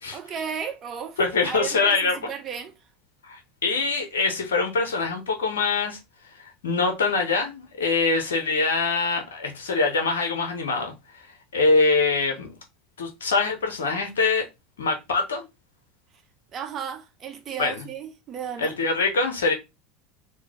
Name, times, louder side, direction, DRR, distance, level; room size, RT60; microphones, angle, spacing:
voice 1, 0.1-1.2 1.4-2.7 16.5-18.7, right 7 dB, 40° right, 0.8 m, -34 dB
voice 2, 1.2-2.3 3.2-6.0 6.4-10.9 11.5-12.5 13.0-14.5 14.8-15.4 17.6-17.8 18.6-19.5, left 4 dB, 90° left, 0.7 m, -24 dB
3.1 x 2.2 x 3.5 m
hypercardioid pair, 95°, 0 cm